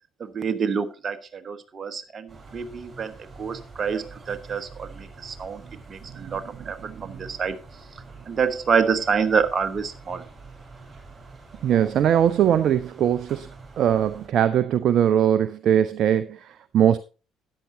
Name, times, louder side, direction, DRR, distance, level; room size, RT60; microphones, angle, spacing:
voice 1, 0.2-5.6 5.9-7.6 8.3-10.2, right 6 dB, 35° right, 1.2 m, -27 dB
sound 1, 2.3-14.3, right 3 dB, 20° right, 7.1 m, -45 dB
voice 2, 6.9-7.3 11.6-13.5 13.8-17.0, right 9 dB, 50° right, 0.5 m, -21 dB
13.0 x 9.7 x 2.8 m
figure-of-eight pair, 50°, 0 cm